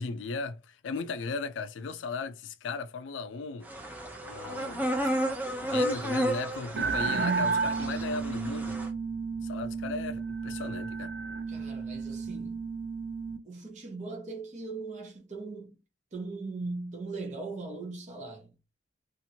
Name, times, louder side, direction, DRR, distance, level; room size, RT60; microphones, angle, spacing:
voice 1, 0.0-3.7 4.2-4.8 5.6-8.8 9.4-11.1, left 4 dB, 85° left, 0.4 m, -36 dB
sound 1, 3.7-8.9, right 1 dB, 10° right, 0.5 m, -32 dB
sound 2, 6.7-13.4, right 5 dB, 65° right, 0.3 m, -32 dB
voice 2, 11.5-12.6 13.4-15.8 16.1-18.5, right 3 dB, 40° right, 0.8 m, -39 dB
2.8 x 2.5 x 2.7 m
head